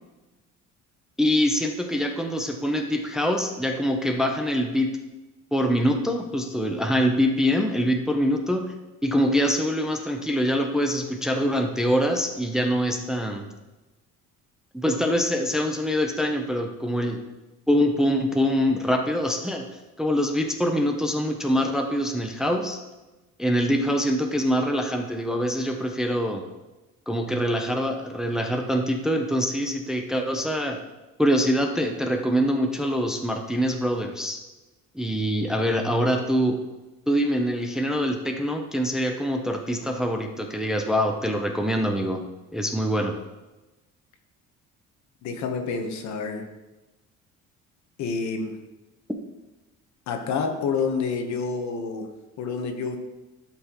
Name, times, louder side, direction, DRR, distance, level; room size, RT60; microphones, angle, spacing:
voice 1, 1.2-5.0 5.5-8.7 9.0-13.5 14.7-17.2 17.7-19.6 20.0-22.8 23.4-26.5 27.1-30.8 31.2-34.4 34.9-36.6 37.1-42.3 42.5-43.2, equal, ahead, 3 dB, 0.6 m, -24 dB
voice 2, 45.2-46.4 48.0-48.5 50.1-52.1 52.4-53.0, left 5 dB, 65° left, 5 dB, 1.1 m, -28 dB
11.5 x 5.8 x 3.0 m, 1.1 s
cardioid pair, 140°, 31 cm